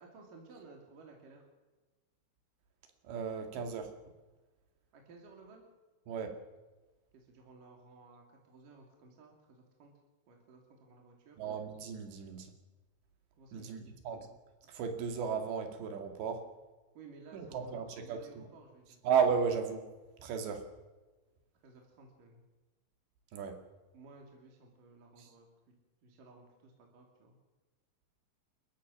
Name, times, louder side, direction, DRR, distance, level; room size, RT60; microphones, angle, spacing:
voice 1, 0.0-1.5 4.9-5.6 7.1-9.9 10.3-11.4 13.4-14.0 17.0-19.0 21.6-22.4 23.9-25.5 26.0-27.4, right 3 dB, 50° right, 1 dB, 3.8 m, -56 dB
voice 2, 3.0-3.9 6.1-6.4 11.4-12.5 13.5-14.3 14.7-16.5 17.3-18.5 19.0-19.9 20.2-20.7 23.3-23.6 25.2-25.3, right 6 dB, 65° right, 6 dB, 4.2 m, -34 dB
29.0 x 15.0 x 6.4 m, 1.2 s
omnidirectional pair, 5.6 m